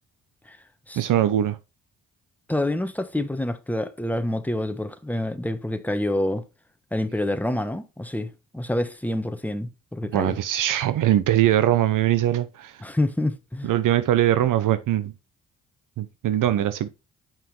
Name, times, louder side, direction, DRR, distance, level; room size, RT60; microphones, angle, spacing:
voice 1, 1.0-1.6 10.1-12.7 13.6-15.1 16.0-16.9, right 12 dB, 75° right, 0.7 m, -21 dB
voice 2, 2.5-6.4 6.9-10.4 12.8-13.7, left 1 dB, 5° left, 1.1 m, -27 dB
7.5 x 5.6 x 3.2 m
cardioid pair, 70°, 32 cm